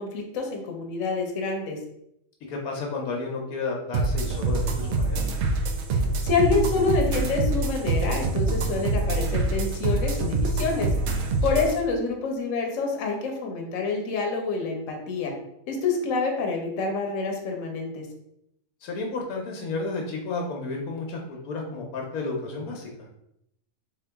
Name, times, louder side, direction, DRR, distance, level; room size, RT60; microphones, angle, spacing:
voice 1, 0.0-1.8 5.9-10.9 11.4-15.3 15.7-18.1, left 4 dB, 60° left, 1 dB, 1.1 m, -27 dB
voice 2, 2.5-5.2 11.5-11.6 18.8-23.1, left 3 dB, 80° left, 1 dB, 1.2 m, -32 dB
sound 1, 3.9-11.7, right 3 dB, 65° right, 0.7 m, -25 dB
4.1 x 2.9 x 3.4 m, 0.78 s
omnidirectional pair, 1.5 m